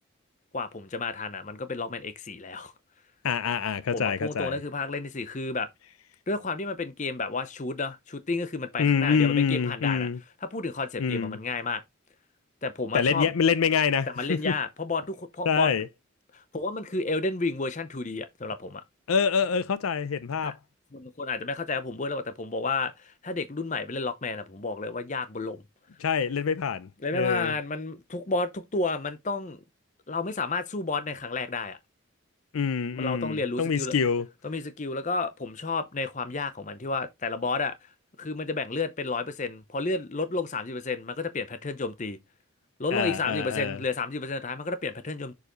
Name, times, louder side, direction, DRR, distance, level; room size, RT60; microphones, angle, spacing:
voice 1, 0.5-2.7 3.9-5.7 6.3-10.1 10.4-11.8 12.6-13.3 14.1-15.7 16.3-18.8 20.4-20.5 20.9-25.6 27.0-29.6 30.1-31.8 32.9-33.9 34.4-37.9 38.2-42.2 42.8-45.3, left 3 dB, 35° left, 0.7 m, -31 dB
voice 2, 3.2-4.6 8.8-10.2 11.0-11.4 12.9-14.5 15.5-15.9 19.1-20.5 26.0-27.5 32.5-34.3 42.9-43.8, left 6 dB, 85° left, 0.5 m, -26 dB
6.7 x 4.8 x 3.0 m
head